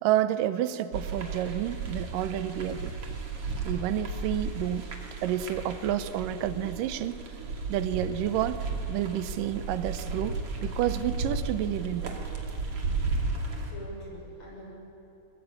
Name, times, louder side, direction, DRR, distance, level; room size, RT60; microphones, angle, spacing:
voice 1, 0.0-3.2 3.6-4.8 5.2-7.2 7.7-12.2, right 12 dB, 85° right, 13 dB, 2.4 m, -30 dB
sound 1, 0.9-13.7, right 3 dB, 45° right, 3.0 m, -34 dB
voice 2, 12.9-14.7, equal, 40° left, -2 dB, 6.4 m, -46 dB
22.0 x 20.5 x 8.8 m, 2.7 s
omnidirectional pair, 3.7 m